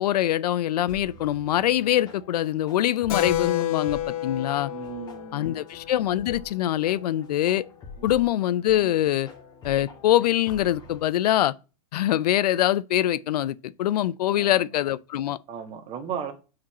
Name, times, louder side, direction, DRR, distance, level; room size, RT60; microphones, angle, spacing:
voice 1, 0.0-4.7 5.3-7.6 8.0-9.3 9.6-11.5 11.9-15.4, left 12 dB, 80° left, 0.6 m, -24 dB
sound 1, 0.9-11.1, left 4 dB, 20° left, 2.0 m, -47 dB
Keyboard (musical), 3.1-7.2, left 12 dB, 60° left, 1.3 m, -31 dB
voice 2, 4.7-5.6 8.0-8.4 14.3-14.6 15.5-16.3, right 8 dB, 30° right, 1.9 m, -36 dB
7.0 x 5.2 x 7.2 m
supercardioid pair, 150°, 20 cm